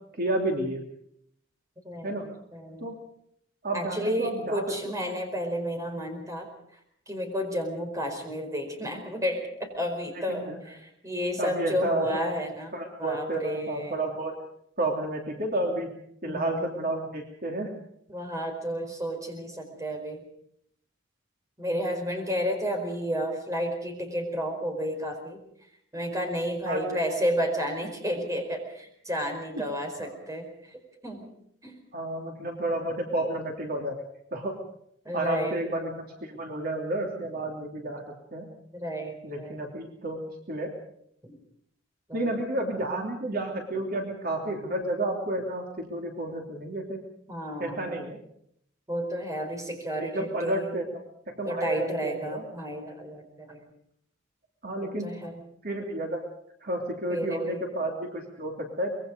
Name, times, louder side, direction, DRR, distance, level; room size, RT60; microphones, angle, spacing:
voice 1, 0.2-0.8 2.0-2.3 2.8-3.0 3.6-4.6 10.3-10.6 11.4-12.1 12.7-14.3 14.8-15.9 16.2-17.7 26.7-27.0 30.0-30.1 31.9-34.5 35.1-38.0 38.3-38.5 39.2-40.2 40.5-40.7 42.1-47.0 47.6-48.2 49.9-50.8 51.4-52.4 54.6-55.1 55.6-56.2 56.6-58.9, right 1 dB, 50° right, 1 dB, 2.9 m, -31 dB
voice 2, 1.8-2.9 3.7-6.5 7.1-12.7 13.0-14.0 16.2-16.7 18.1-20.2 21.6-25.4 25.9-31.2 31.6-31.7 35.0-35.6 38.7-39.6 41.2-41.4 42.1-42.4 47.3-48.0 48.9-50.8 51.4-53.7 54.8-55.4 57.1-57.7, equal, 15° right, 3 dB, 4.7 m, -32 dB
24.5 x 21.5 x 5.2 m, 0.71 s
head